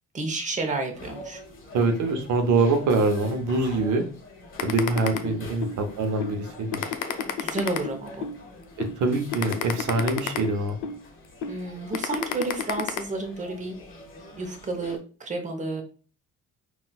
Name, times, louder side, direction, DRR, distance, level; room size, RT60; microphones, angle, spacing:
voice 1, 0.1-1.4 5.1-5.4 7.4-8.3 11.5-13.8 14.4-15.8, right 2 dB, 25° right, 4 dB, 0.7 m, -31 dB
sound 1, 0.9-15.0, left 1 dB, 45° left, 1.0 m, -45 dB
voice 2, 1.7-4.0 4.6-6.8 9.0-10.8, right 3 dB, 75° right, 5 dB, 0.7 m, -24 dB
sound 2, 4.6-5.8 6.2-6.3 6.7-8.4 8.8-8.9 9.3-11.0 11.4-11.6 11.9-13.0, left 7 dB, 80° left, 0.5 m, -29 dB
3.9 x 2.4 x 2.3 m, 0.37 s
cardioid pair, 90°, 30 cm